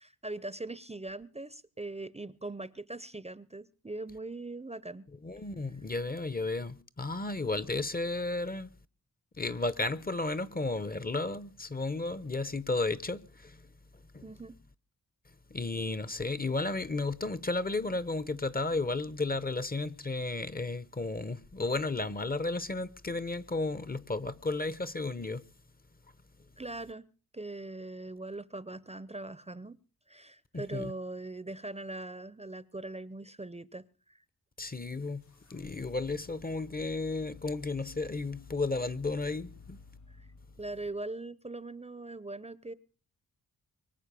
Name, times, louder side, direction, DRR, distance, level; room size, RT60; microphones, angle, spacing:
voice 1, 0.0-5.1 14.2-14.6 26.6-29.8 30.1-34.2 40.2-40.3 40.6-42.7, right 2 dB, 20° right, 0.7 m, -41 dB
voice 2, 5.2-8.7 9.4-13.7 14.1-14.2 15.5-25.5 30.5-30.9 34.6-35.2 35.5-39.8, left 3 dB, 25° left, 0.8 m, -33 dB
sound 1, 35.2-41.1, left 5 dB, 50° left, 1.1 m, -54 dB
24.0 x 8.2 x 6.8 m
cardioid pair, 80°, 36 cm